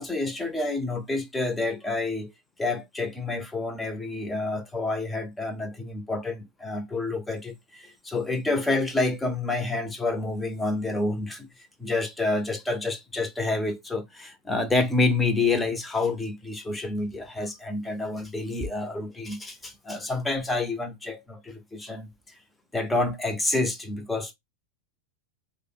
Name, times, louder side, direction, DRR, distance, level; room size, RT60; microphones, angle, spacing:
voice 1, 0.0-2.3 2.6-11.5 11.8-22.1 22.7-24.3, left 3 dB, 10° left, 0.7 m, -28 dB
4.9 x 2.2 x 2.4 m
figure-of-eight pair, 90°, 0 cm